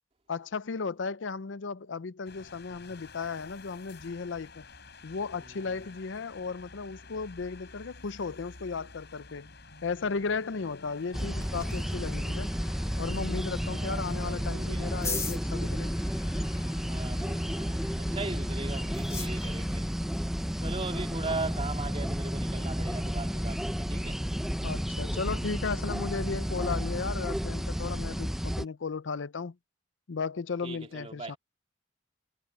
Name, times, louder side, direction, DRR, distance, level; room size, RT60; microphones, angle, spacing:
voice 1, 0.3-4.6 5.0-9.5 9.8-12.5 13.0-15.9 24.6-29.6 30.1-31.4, left 4 dB, 80° left, 0.6 m, -35 dB
sound 1, 2.2-19.8, left 4 dB, 60° left, 7.7 m, -51 dB
sound 2, 10.9-23.5, left 4 dB, 15° left, 1.4 m, -45 dB
sound 3, 11.1-28.6, equal, ahead, 0.8 m, -32 dB
voice 2, 13.7-15.0 16.9-19.9 20.6-24.2 30.6-31.4, right 3 dB, 35° right, 2.6 m, -39 dB
head